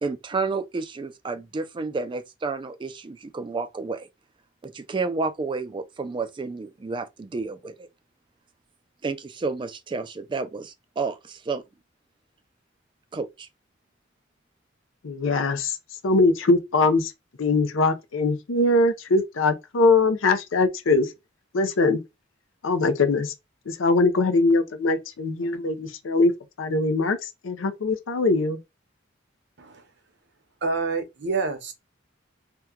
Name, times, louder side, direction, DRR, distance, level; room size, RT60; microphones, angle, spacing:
voice 1, 0.0-4.1 4.6-7.9 9.0-11.6 13.1-13.5, right 4 dB, 25° right, 0.3 m, -31 dB
voice 2, 15.0-15.8 16.0-17.1 17.4-21.1 21.5-22.0 22.6-23.3 23.7-26.3 26.6-28.6, left 3 dB, 85° left, 0.6 m, -22 dB
voice 3, 30.6-31.7, right 4 dB, 60° right, 0.8 m, -27 dB
2.8 x 2.2 x 3.5 m
head